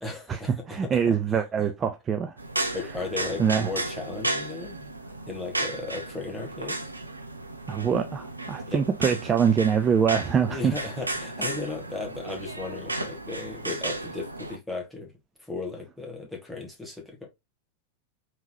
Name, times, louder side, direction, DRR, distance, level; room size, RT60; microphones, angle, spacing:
voice 1, 0.0-1.2 1.6-1.7 2.7-4.9 5.3-6.8 8.7-8.8 10.5-15.1 15.4-17.3, left 3 dB, 5° left, 1.4 m, -36 dB
voice 2, 0.7-2.4 3.4-3.7 7.7-10.8, right 7 dB, 20° right, 0.4 m, -24 dB
sound 1, 2.4-14.6, right 2 dB, 85° right, 0.5 m, -34 dB
3.6 x 3.0 x 2.7 m
figure-of-eight pair, 90°, 0 cm